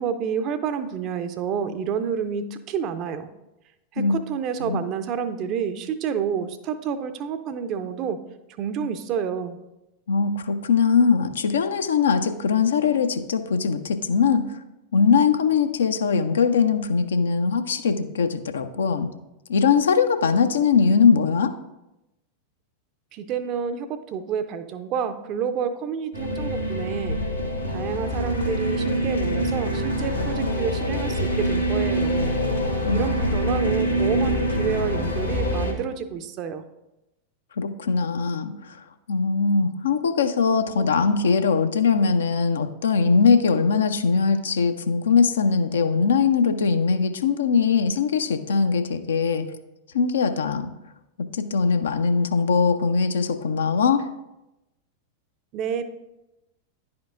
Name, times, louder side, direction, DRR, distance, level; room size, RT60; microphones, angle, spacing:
voice 1, 0.0-3.3 3.9-8.2 8.6-9.6 23.1-27.2 27.7-32.3 32.9-36.6 55.5-55.8, right 7 dB, 40° right, 10 dB, 0.5 m, -29 dB
voice 2, 10.1-14.6 14.9-19.1 19.5-21.5 32.8-33.1 37.6-38.8 39.1-49.5 49.9-50.7 51.3-54.0, left 5 dB, 65° left, 9 dB, 0.4 m, -21 dB
sound 1, 26.1-35.7, equal, 90° left, 1.3 m, -25 dB
10.5 x 4.3 x 2.5 m, 0.93 s
figure-of-eight pair, 90°, 0 cm